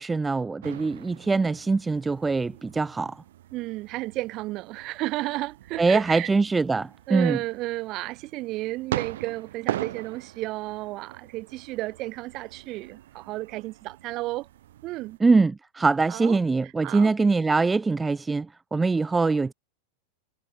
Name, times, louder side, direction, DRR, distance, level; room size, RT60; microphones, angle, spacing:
voice 1, 0.0-3.2 5.8-7.4 15.2-19.5, right 4 dB, 10° right, 1.0 m, -23 dB
sound 1, 0.6-15.2, right 13 dB, 55° right, 2.2 m, -40 dB
voice 2, 3.5-6.3 7.1-14.5 14.8-15.2 16.1-16.4 16.8-17.1, right 19 dB, 40° right, 5.6 m, -32 dB
figure-of-eight pair, 90°, 0 cm